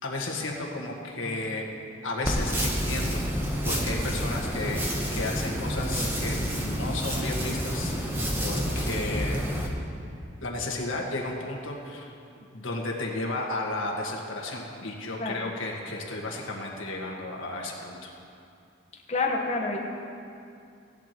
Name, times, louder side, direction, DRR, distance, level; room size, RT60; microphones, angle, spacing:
voice 1, 0.0-1.7 2.0-3.2 3.6-4.9 5.1-7.9 8.2-9.4 10.4-12.1 12.5-18.1, left 2 dB, 85° left, -1 dB, 1.6 m, -33 dB
sound 1, 2.2-9.7, equal, 10° right, 1.0 m, -29 dB
voice 2, 19.1-19.8, left 3 dB, 35° left, 0 dB, 1.1 m, -28 dB
16.5 x 10.5 x 3.0 m, 2.5 s
head